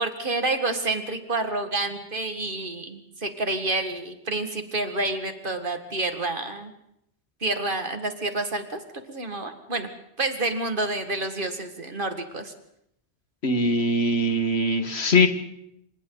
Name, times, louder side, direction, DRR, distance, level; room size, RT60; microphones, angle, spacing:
voice 1, 0.0-6.7 7.4-8.8 9.1-9.9 10.2-12.5, right 2 dB, 50° right, 7 dB, 2.1 m, -28 dB
voice 2, 13.4-15.3, left 1 dB, 65° left, 8 dB, 2.0 m, -21 dB
27.5 x 25.5 x 4.0 m, 0.75 s
omnidirectional pair, 1.2 m